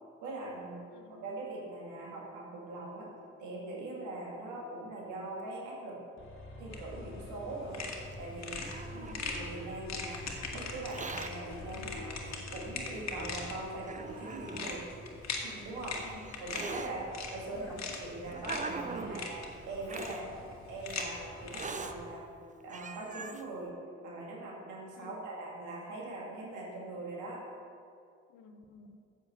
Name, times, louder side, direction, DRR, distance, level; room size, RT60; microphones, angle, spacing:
voice 1, 0.2-0.8 1.1-3.1 3.4-6.0 6.6-7.9 8.2-8.7 9.2-10.3 10.5-12.2 12.5-14.9 15.4-16.0 16.4-19.4 19.7-20.4 20.7-22.4 22.6-23.8 24.0-27.4, right 2 dB, 85° right, -2 dB, 2.0 m, -41 dB
voice 2, 0.9-1.3 8.9-9.2 11.7-12.0 16.0-16.3 17.5-17.8 25.0-25.2 28.3-29.0, left 4 dB, 85° left, 7 dB, 0.9 m, -52 dB
sound 1, 6.2-13.7, left 2 dB, 40° left, 2.0 m, -47 dB
sound 2, 6.7-22.0, left 4 dB, 65° left, 1.6 m, -42 dB
Hiss, 8.1-9.8 10.7-11.3 12.3-12.4 13.2-13.3 13.8-14.8 15.7-16.9 17.7-19.2 19.8-20.2 20.9-21.0 21.5-21.9 22.4-22.5 22.7-23.4, right 4 dB, 25° right, 0.7 m, -42 dB
8.2 x 7.6 x 6.0 m, 2.3 s
supercardioid pair, 55°, 29 cm